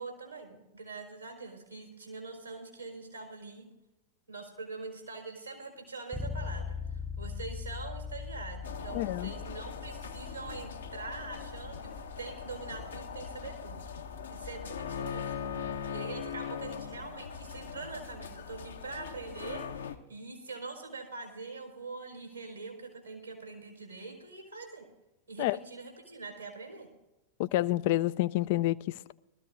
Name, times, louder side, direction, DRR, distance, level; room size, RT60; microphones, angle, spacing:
voice 1, 0.0-3.7 4.3-13.8 14.3-15.5 15.9-24.8 25.3-26.9, right 3 dB, 85° right, 3.8 m, -43 dB
Bass guitar, 6.1-16.0, left 5 dB, ahead, 0.7 m, -42 dB
sound 1, 8.6-20.0, left 7 dB, 70° left, 0.8 m, -41 dB
voice 2, 8.9-9.3 25.4-25.6 27.4-29.1, left 16 dB, 50° left, 0.3 m, -28 dB
20.0 x 14.0 x 2.5 m
figure-of-eight pair, 90°, 0 cm